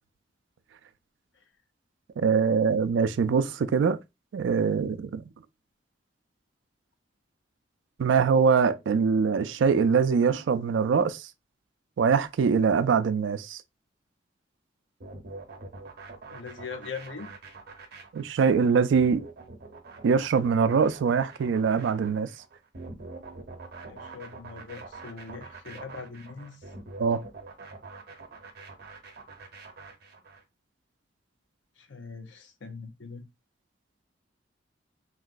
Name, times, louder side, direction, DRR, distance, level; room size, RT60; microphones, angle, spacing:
voice 1, 2.2-4.0 4.3-5.2 8.0-11.2 12.0-13.6 18.1-19.2 20.0-22.3 27.0-27.2, right 5 dB, 85° right, 0.4 m, -23 dB
sound 1, 15.0-30.4, right 3 dB, 60° right, 0.8 m, -45 dB
voice 2, 16.3-17.3 23.8-26.6 31.8-33.2, left 5 dB, 85° left, 0.7 m, -41 dB
3.1 x 2.9 x 2.4 m
head